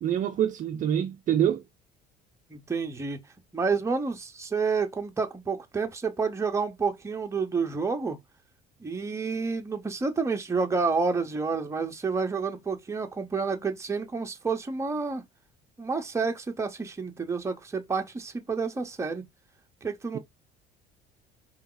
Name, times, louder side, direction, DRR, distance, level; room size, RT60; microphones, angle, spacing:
voice 1, 0.0-1.6 20.1-20.2, right 10 dB, 40° right, 0.5 m, -26 dB
voice 2, 2.5-3.2 3.5-8.2 8.8-15.2 15.8-19.2 19.8-20.2, right 4 dB, 15° right, 0.9 m, -29 dB
4.6 x 2.8 x 3.8 m
cardioid pair, 140°, 20 cm